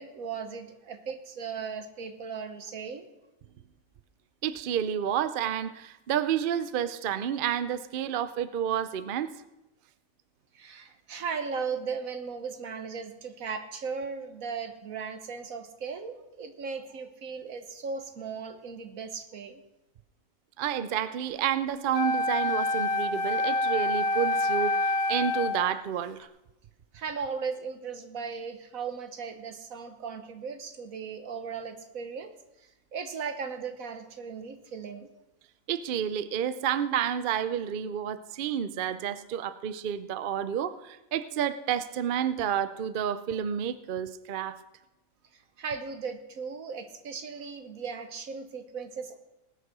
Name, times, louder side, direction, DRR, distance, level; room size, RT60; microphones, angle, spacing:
voice 1, 0.0-3.0 10.5-19.6 26.9-32.3 32.6-35.1 45.3-49.2, right 5 dB, 75° right, 7 dB, 1.6 m, -37 dB
voice 2, 4.4-9.3 20.6-26.3 35.7-44.6, right 9 dB, 55° right, 13 dB, 0.6 m, -30 dB
Wind instrument woodwind instrument, 21.9-25.7, left 2 dB, 85° left, 1.3 m, -27 dB
19.0 x 6.4 x 6.1 m, 0.95 s
omnidirectional pair, 1.5 m